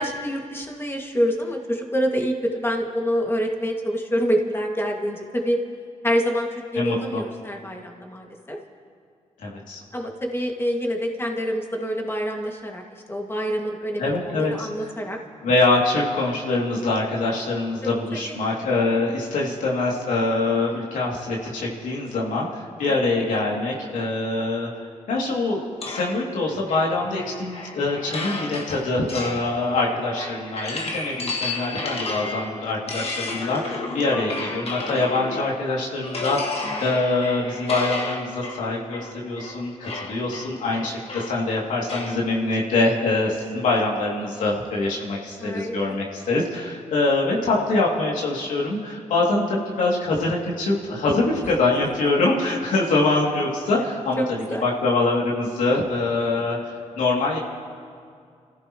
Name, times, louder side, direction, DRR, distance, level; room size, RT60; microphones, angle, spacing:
voice 1, 0.0-5.6 6.0-8.6 9.9-12.8 13.1-15.2 17.8-17.9 18.3-18.4 20.9-21.0 22.9-23.0 29.0-29.1 34.5-34.6 45.4-45.8 54.2-54.6 56.3-56.5, equal, 20° left, 1 dB, 2.1 m, -26 dB
voice 2, 6.7-7.2 9.4-9.8 14.0-14.5 15.4-24.7 25.1-57.4, left 2 dB, 90° left, -3 dB, 2.7 m, -24 dB
sound 1, 25.8-35.6 36.0-42.2, left 3 dB, 50° left, 1.8 m, -33 dB
29.0 x 15.5 x 3.1 m, 2.3 s
cardioid pair, 70°, 13 cm